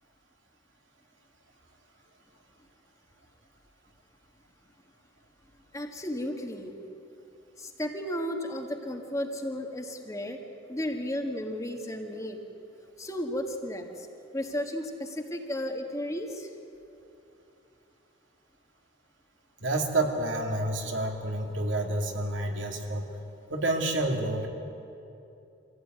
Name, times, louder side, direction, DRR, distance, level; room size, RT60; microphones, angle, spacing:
voice 1, 5.7-6.8 7.6-10.4 10.7-12.4 13.0-14.1 14.3-16.5, left 1 dB, 15° left, 3 dB, 1.7 m, -34 dB
voice 2, 19.6-23.1 23.5-24.5, right 2 dB, 75° right, 2 dB, 2.7 m, -29 dB
25.0 x 16.0 x 9.4 m, 2.8 s
head